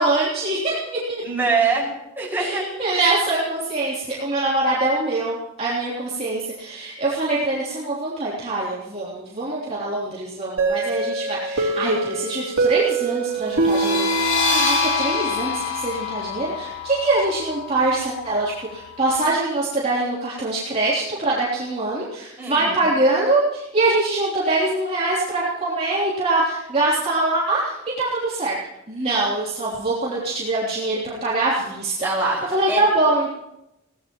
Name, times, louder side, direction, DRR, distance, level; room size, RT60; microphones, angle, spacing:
voice 1, 0.0-1.2 2.4-28.6 28.9-33.4, right 2 dB, 30° right, -8 dB, 3.3 m, -23 dB
voice 2, 1.2-1.8 2.2-2.6 22.4-22.9 32.0-32.8, right 4 dB, 10° right, -4 dB, 6.1 m, -23 dB
sound 1, 10.6-15.3, right 4 dB, 80° right, 3.2 m, -24 dB
sound 2, 13.5-19.0, left 5 dB, 40° left, 3.7 m, -26 dB
22.5 x 18.0 x 3.1 m, 0.88 s
head